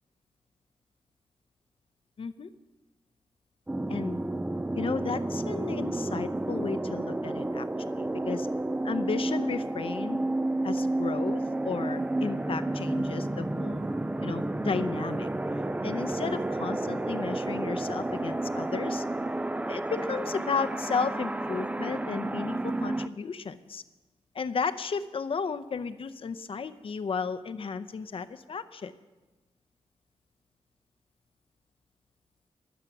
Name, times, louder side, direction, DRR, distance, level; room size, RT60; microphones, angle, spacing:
voice 1, 2.2-2.5 3.9-4.2 4.7-7.7 8.0-8.5 8.8-10.2 10.6-13.8 14.2-15.3 15.8-19.0 19.7-23.8 24.3-28.9, left 5 dB, 60° left, 12 dB, 0.7 m, -34 dB
sound 1, 3.7-23.1, right 2 dB, 10° right, 0.4 m, -31 dB
23.0 x 8.2 x 6.0 m, 1.2 s
wide cardioid pair, 140°, 11 cm